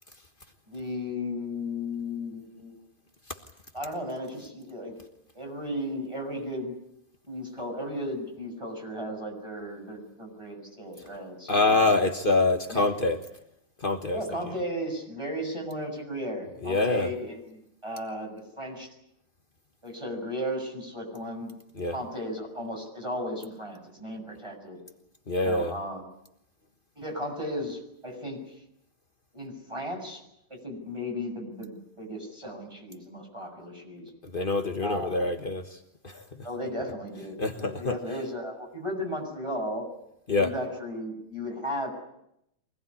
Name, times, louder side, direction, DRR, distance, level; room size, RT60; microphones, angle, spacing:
voice 1, 0.7-2.8 3.7-5.0 5.3-6.7 7.3-11.9 12.7-12.9 14.1-18.9 19.8-21.5 21.9-24.8 25.4-26.1 27.0-28.5 29.3-30.2 30.5-34.1 34.8-35.1 36.4-39.9 40.4-41.9, equal, 10° right, 2 dB, 7.1 m, -35 dB
voice 2, 11.5-13.2 13.8-14.2 16.6-17.1 21.8-21.9 25.3-25.7 34.2-35.8 36.0-36.2 37.4-38.0 40.3-40.5, left 2 dB, 75° left, 5 dB, 0.4 m, -25 dB
24.5 x 20.0 x 9.8 m, 0.81 s
omnidirectional pair, 3.4 m